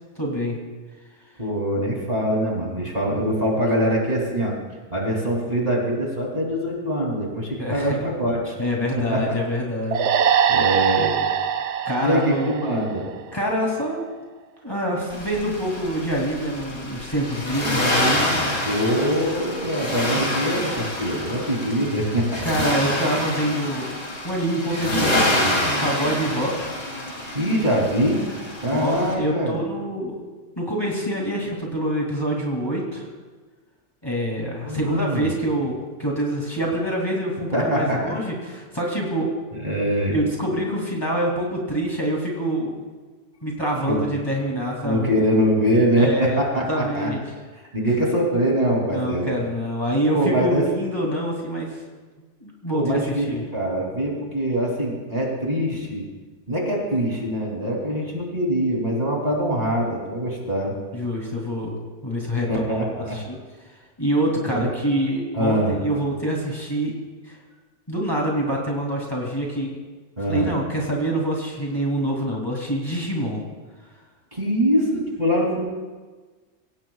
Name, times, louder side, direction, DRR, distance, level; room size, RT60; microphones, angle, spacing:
voice 1, 0.2-0.6 7.6-8.0 8.6-10.4 11.8-12.5 13.3-14.0 14.6-18.2 22.4-24.0 24.2-26.8 28.7-30.2 30.6-33.1 34.0-39.3 40.1-42.8 43.4-45.1 46.0-47.2 48.9-51.8 52.4-53.4 60.9-61.7 62.0-62.8 63.1-63.4 64.0-66.9 67.3-67.4 67.9-69.8 70.3-73.4, right 1 dB, 20° left, -3 dB, 2.8 m, -26 dB
voice 2, 1.4-4.5 4.9-8.5 9.1-9.3 10.5-11.4 12.0-13.1 18.6-22.4 27.3-28.2 28.6-29.5 34.6-35.3 37.5-38.1 39.6-40.3 43.9-44.0 44.8-47.1 47.7-49.3 50.1-50.6 52.7-56.0 56.5-60.7 62.5-63.2 64.4-64.7 65.3-65.7 70.2-70.5 74.3-75.7, equal, 35° right, -2 dB, 3.2 m, -23 dB
sound 1, 9.9-13.4, right 8 dB, 70° right, 0.9 m, -22 dB
Accelerating revving vroom, 15.1-29.1, left 1 dB, 60° left, 3.5 m, -27 dB
24.5 x 17.0 x 2.4 m, 1.4 s
omnidirectional pair, 1.3 m